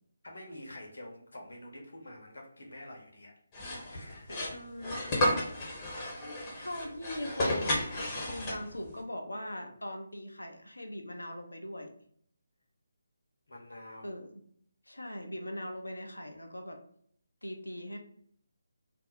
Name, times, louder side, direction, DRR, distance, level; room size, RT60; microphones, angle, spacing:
voice 1, 0.2-3.3 3.7-4.6 13.5-14.2, left 1 dB, 70° left, 0 dB, 1.0 m, -47 dB
sound 1, 3.5-8.9, left 1 dB, 20° left, 0.8 m, -33 dB
voice 2, 4.5-5.3 6.6-11.9 14.0-14.3 14.9-16.8 17.4-18.0, left 1 dB, 85° left, 3 dB, 0.6 m, -41 dB
2.6 x 2.0 x 4.0 m, 0.64 s
figure-of-eight pair, 150°, 0 cm